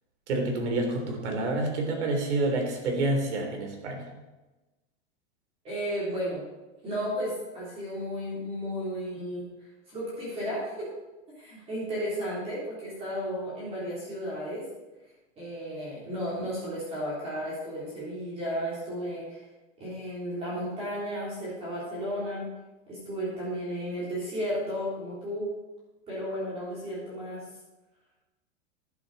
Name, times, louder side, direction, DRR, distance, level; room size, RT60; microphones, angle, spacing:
voice 1, 0.3-4.1, right 2 dB, 80° right, 2 dB, 3.6 m, -28 dB
voice 2, 5.6-6.4 6.8-9.5 9.9-10.9 11.4-14.6 15.4-19.4 19.8-22.5 22.9-25.5 26.1-27.4, equal, 15° right, -7 dB, 3.6 m, -33 dB
11.5 x 10.5 x 4.2 m, 1.1 s
supercardioid pair, 180°, 34 cm